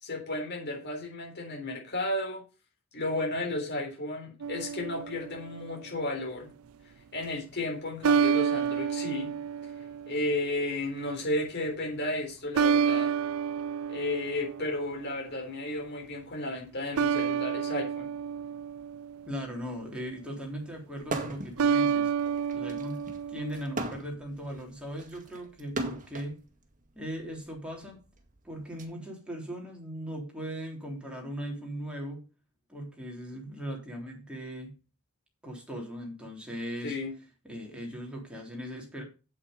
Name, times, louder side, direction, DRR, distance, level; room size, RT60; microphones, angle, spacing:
voice 1, 0.0-2.4 2.9-6.5 7.1-9.3 10.1-13.1 13.9-18.1 36.8-37.2, left 2 dB, 50° left, 0 dB, 3.8 m, -33 dB
sound 1, 4.4-5.7 8.0-10.5 12.5-15.1 17.0-19.5 21.6-23.9, right 7 dB, 70° right, 0.4 m, -29 dB
voice 2, 19.3-22.1 22.5-26.4 27.0-28.0 28.4-32.2 32.7-34.7 35.4-37.0 37.4-39.0, equal, 5° right, -1 dB, 3.6 m, -38 dB
sound 2, 21.0-21.6 21.9-26.3 27.2-28.8, right 2 dB, 40° right, 1.9 m, -37 dB
8.5 x 8.5 x 5.2 m, 0.31 s
head